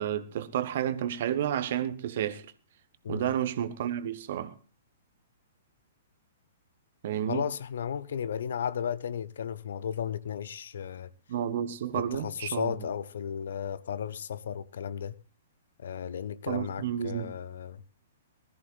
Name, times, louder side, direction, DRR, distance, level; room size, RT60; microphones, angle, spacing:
voice 1, 0.0-2.4 3.1-4.5 7.0-7.4 11.3-12.8 16.5-17.4, right 10 dB, 50° right, 1.1 m, -31 dB
voice 2, 7.3-11.1 11.9-15.2 15.8-17.8, left 8 dB, 60° left, 0.6 m, -34 dB
20.0 x 13.5 x 2.4 m
figure-of-eight pair, 115°, 0 cm